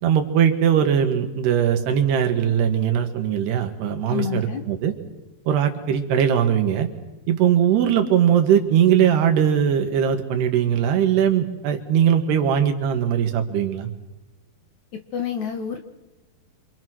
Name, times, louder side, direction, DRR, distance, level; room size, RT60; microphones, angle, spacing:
voice 1, 0.0-4.9 5.5-6.9 7.3-13.9, right 9 dB, 70° right, 5 dB, 3.8 m, -20 dB
voice 2, 4.1-4.6 14.9-15.8, left 8 dB, 65° left, 5 dB, 2.0 m, -28 dB
27.0 x 26.0 x 6.3 m, 1.1 s
omnidirectional pair, 5.0 m